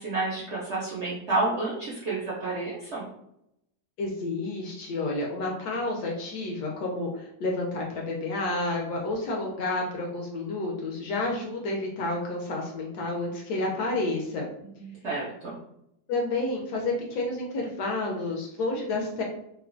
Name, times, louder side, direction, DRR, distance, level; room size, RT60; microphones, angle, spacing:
voice 1, 0.0-3.1 14.8-15.6, right 2 dB, 70° right, -6 dB, 0.6 m, -30 dB
voice 2, 4.0-14.5 16.1-19.2, left 2 dB, 75° left, -1 dB, 1.1 m, -30 dB
3.0 x 2.1 x 2.4 m, 0.79 s
omnidirectional pair, 1.9 m